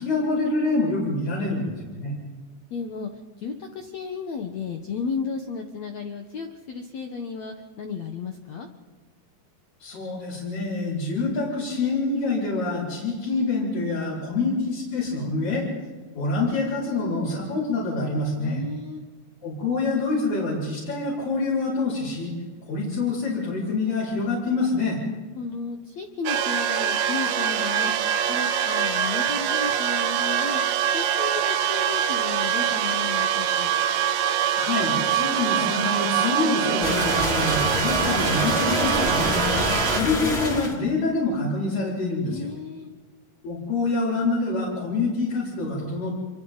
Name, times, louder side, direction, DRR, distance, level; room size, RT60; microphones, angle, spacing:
voice 1, 0.0-2.1 9.8-15.7 16.1-18.6 19.4-22.3 22.7-25.0 34.6-42.5 43.4-46.1, left 3 dB, 60° left, -9 dB, 7.6 m, -26 dB
voice 2, 2.7-3.1 3.4-8.7 18.4-19.1 25.4-27.9 28.3-30.6 30.9-33.7 42.2-42.9, left 5 dB, 85° left, 4 dB, 1.5 m, -34 dB
sound 1, 26.3-40.0, right 9 dB, 80° right, 3.4 m, -24 dB
sound 2, 36.8-40.8, left 1 dB, 15° left, 3.2 m, -26 dB
28.0 x 24.0 x 4.1 m, 1.4 s
omnidirectional pair, 5.2 m